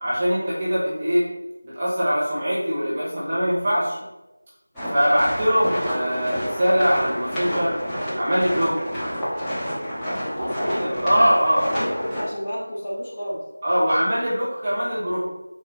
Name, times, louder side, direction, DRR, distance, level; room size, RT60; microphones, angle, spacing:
voice 1, 0.0-1.3 1.6-4.0 4.9-7.7 8.1-8.8 10.4-11.6 13.6-15.2, equal, 20° right, -8 dB, 0.9 m, -22 dB
sound 1, 4.7-12.2, equal, 5° left, 0.7 m, -29 dB
voice 2, 10.4-10.9 11.6-13.4, equal, 20° left, -8 dB, 1.3 m, -31 dB
4.4 x 3.0 x 3.8 m, 1.0 s
figure-of-eight pair, 170°, 0 cm